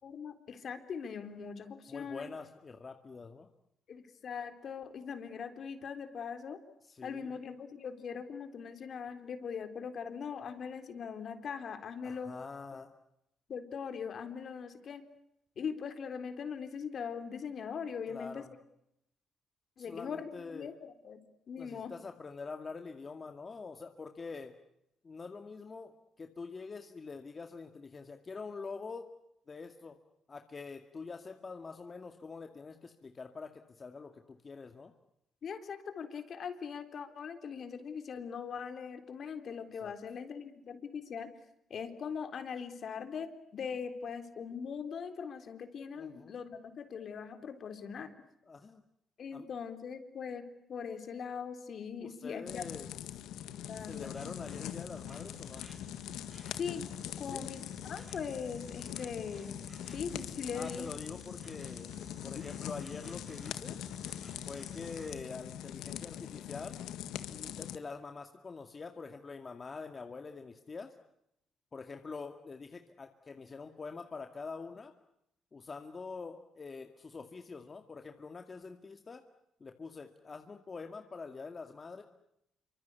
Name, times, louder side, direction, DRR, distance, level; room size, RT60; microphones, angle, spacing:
voice 1, 0.0-2.3 3.9-6.6 7.0-12.3 13.5-15.0 15.6-18.4 19.8-21.2 21.5-21.9 35.4-41.3 41.7-48.1 49.2-52.6 53.7-54.2 56.5-56.9 57.2-59.6 59.9-60.9 62.3-62.4, left 6 dB, 55° left, 8 dB, 3.7 m, -41 dB
voice 2, 1.9-3.5 6.8-7.4 12.0-12.9 18.1-18.5 19.8-20.8 21.6-24.5 25.0-29.1 29.5-30.0 30.3-34.9 39.8-39.9 46.0-46.3 48.5-48.8 49.3-49.5 52.0-53.2 53.9-55.7 57.3-57.4 60.5-61.9 62.2-63.8 64.5-66.8 67.3-70.9 71.7-74.9 75.5-79.2 79.6-82.0, left 4 dB, 35° left, 6 dB, 2.1 m, -45 dB
sound 1, 52.5-67.8, left 11 dB, 90° left, 1.8 m, -43 dB
Insect, 53.7-65.2, right 1 dB, 20° right, 5.3 m, -55 dB
27.5 x 25.0 x 8.3 m, 0.80 s
cardioid pair, 90°, 0 cm